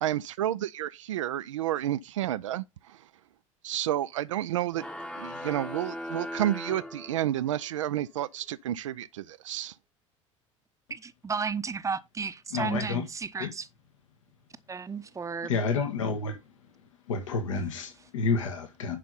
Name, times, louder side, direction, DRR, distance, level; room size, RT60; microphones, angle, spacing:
voice 1, 0.0-3.0 3.6-4.8 5.2-9.7, right 12 dB, 70° right, 0.5 m, -30 dB
sound 1, 4.7-7.6, left 1 dB, 5° left, 1.0 m, -39 dB
voice 2, 10.9-13.7 14.7-15.6, right 5 dB, 20° right, 0.8 m, -33 dB
voice 3, 12.5-13.0 13.4-13.5 15.5-16.4 17.1-19.0, left 4 dB, 70° left, 1.7 m, -29 dB
10.5 x 5.2 x 4.0 m
figure-of-eight pair, 65°, 17 cm